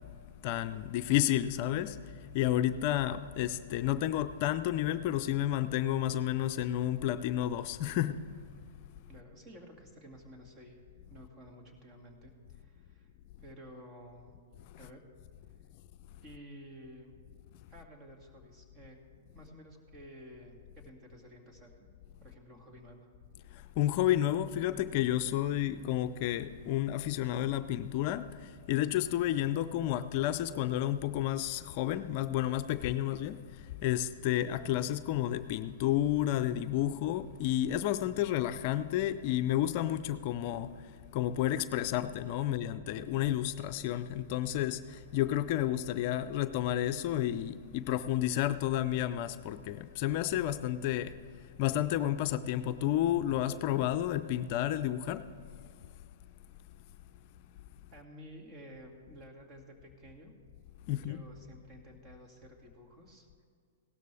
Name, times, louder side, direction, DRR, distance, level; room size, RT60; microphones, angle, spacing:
voice 1, 0.4-2.0 2.3-8.2 23.5-51.1 51.6-55.2 60.9-61.2, left 12 dB, 50° left, 0.5 m, -31 dB
voice 2, 9.1-10.8 11.1-13.1 13.4-14.4 14.8-15.0 16.2-17.1 17.7-19.0 19.3-21.9 22.2-23.1 57.9-60.3 60.9-63.5, equal, 30° right, 2.3 m, -52 dB
17.0 x 12.5 x 3.4 m
hypercardioid pair, 115°, 0 cm